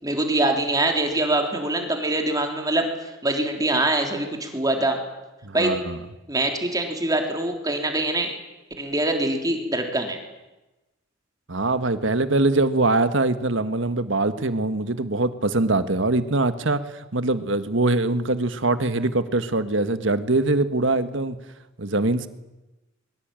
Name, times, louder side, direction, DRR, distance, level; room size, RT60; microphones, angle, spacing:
voice 1, 0.0-5.0 5.5-5.8 6.3-8.3 8.8-10.2, right 2 dB, 20° right, 3 dB, 3.6 m, -24 dB
voice 2, 5.4-6.0 11.5-21.4 21.8-22.3, right 2 dB, 65° right, 10 dB, 1.6 m, -23 dB
23.5 x 23.0 x 9.0 m, 1.0 s
head